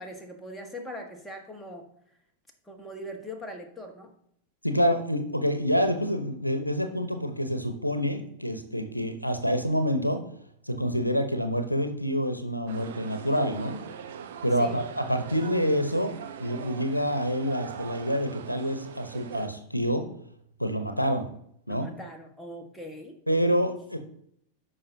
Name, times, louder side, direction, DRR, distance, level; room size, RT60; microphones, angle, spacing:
voice 1, 0.0-1.9 2.6-4.1 14.6-14.8 21.7-23.1, equal, 5° left, 2 dB, 1.5 m, -41 dB
voice 2, 4.6-10.2 10.7-13.8 14.4-16.1 16.4-20.1 20.6-21.3 21.7-21.9 23.3-24.0, equal, 90° left, 8 dB, 0.8 m, -27 dB
sound 1, 12.7-19.5, right 8 dB, 60° right, 1.0 m, -42 dB
13.5 x 5.6 x 2.8 m, 0.70 s
figure-of-eight pair, 90°, 0 cm